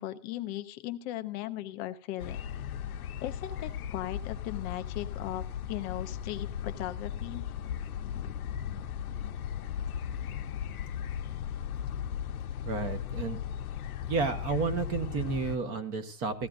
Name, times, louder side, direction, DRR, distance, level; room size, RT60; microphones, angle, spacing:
voice 1, 0.0-2.4 3.2-7.5, left 14 dB, 20° left, 10 dB, 0.4 m, -38 dB
sound 1, 2.2-15.6, left 9 dB, 75° left, 0.9 m, -36 dB
voice 2, 12.6-13.4 14.1-16.5, right 5 dB, 30° right, 9 dB, 1.1 m, -31 dB
16.5 x 14.0 x 2.6 m, 0.38 s
hypercardioid pair, 135°, 44 cm